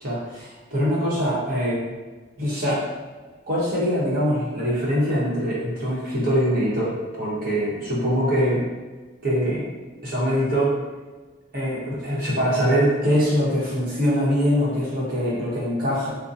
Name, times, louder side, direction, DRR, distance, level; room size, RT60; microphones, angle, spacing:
voice 1, 0.0-1.8 2.4-2.8 3.5-6.9 7.2-8.6 9.2-9.7 10.0-10.8 11.5-16.1, equal, 50° right, -7 dB, 1.0 m, -23 dB
3.7 x 2.2 x 2.6 m, 1.3 s
head